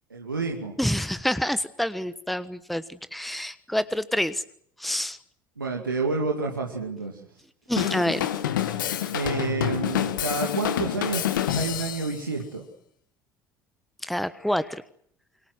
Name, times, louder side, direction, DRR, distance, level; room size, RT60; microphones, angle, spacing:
voice 1, 0.1-0.8 5.6-7.3 9.1-11.3 11.5-12.6, right 4 dB, 85° right, 0 dB, 2.5 m, -29 dB
voice 2, 0.8-4.4 4.8-5.2 7.7-8.3 8.9-9.0 14.0-14.8, equal, ahead, 14 dB, 1.2 m, -27 dB
Drum kit / Drum, 7.8-12.2, left 11 dB, 75° left, 1.9 m, -27 dB
29.5 x 23.5 x 6.3 m, 0.67 s
figure-of-eight pair, 60°, 11 cm